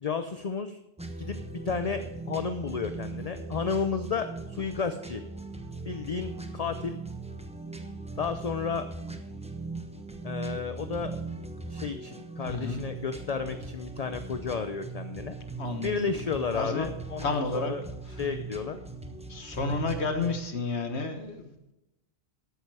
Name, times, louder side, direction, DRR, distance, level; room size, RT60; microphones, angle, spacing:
voice 1, 0.0-0.8 1.2-1.4 1.6-5.2 5.8-7.0 8.2-8.9 10.2-11.2 11.7-15.3 15.8-17.8 18.2-18.8, left 5 dB, 40° left, 8 dB, 0.7 m, -32 dB
sound 1, 1.0-20.4, right 3 dB, 5° right, 1.0 m, -40 dB
voice 2, 12.4-12.8 15.6-16.1 16.5-16.9 17.2-17.7 19.3-21.7, left 3 dB, 75° left, 6 dB, 1.6 m, -31 dB
13.0 x 8.9 x 4.8 m, 0.91 s
omnidirectional pair, 1.1 m